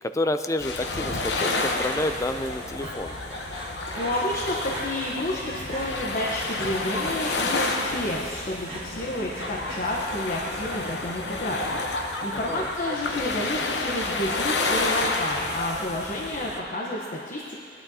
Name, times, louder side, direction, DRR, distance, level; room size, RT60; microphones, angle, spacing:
voice 1, 0.0-3.1 12.3-12.7, left 1 dB, 20° left, 9 dB, 0.4 m, -29 dB
sound 1, 0.6-16.6, left 3 dB, 75° left, 0.9 m, -30 dB
Breathing, 2.8-5.2 5.5-5.9 6.4-7.9 8.2-11.0 11.3-11.9, right 1 dB, 35° right, 1.6 m, -41 dB
voice 2, 4.0-17.5, left 1 dB, 50° left, -3 dB, 0.9 m, -30 dB
17.5 x 11.0 x 2.8 m, 2.5 s
head